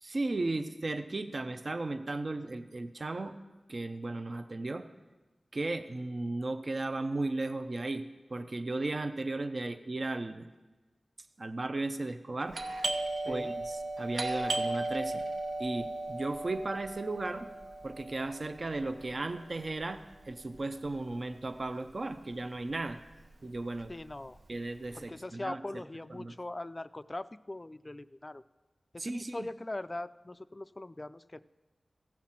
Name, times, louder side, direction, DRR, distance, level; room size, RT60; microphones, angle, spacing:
voice 1, 0.0-3.4 3.7-4.9 5.5-8.0 8.3-10.5 11.4-12.6 13.3-15.2 15.6-17.5 17.8-23.0 23.4-23.9 24.5-25.6 26.1-26.3 29.0-29.5, right 2 dB, 50° right, 9 dB, 0.6 m, -35 dB
Doorbell, 12.5-21.9 22.1-22.2 22.9-23.2 23.5-24.9, right 2 dB, 85° right, 0.9 m, -36 dB
voice 2, 23.9-24.4 25.0-28.4 28.9-31.4, left 2 dB, 30° left, 14 dB, 0.3 m, -41 dB
15.5 x 5.9 x 7.3 m, 1.2 s
wide cardioid pair, 75°, 0 cm